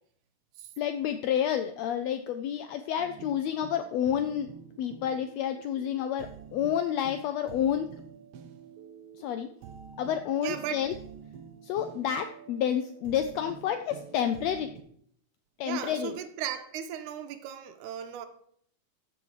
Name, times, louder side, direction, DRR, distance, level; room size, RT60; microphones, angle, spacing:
voice 1, 0.8-4.5 4.8-7.9 9.2-9.5 10.0-10.9 11.6-14.7 15.6-16.1, left 9 dB, 80° left, 1.5 m, -29 dB
sound 1, 3.0-14.8, right 7 dB, 70° right, 1.6 m, -48 dB
voice 2, 10.4-10.8 15.6-18.3, right 9 dB, 85° right, 2.3 m, -36 dB
14.0 x 4.8 x 4.7 m
omnidirectional pair, 3.5 m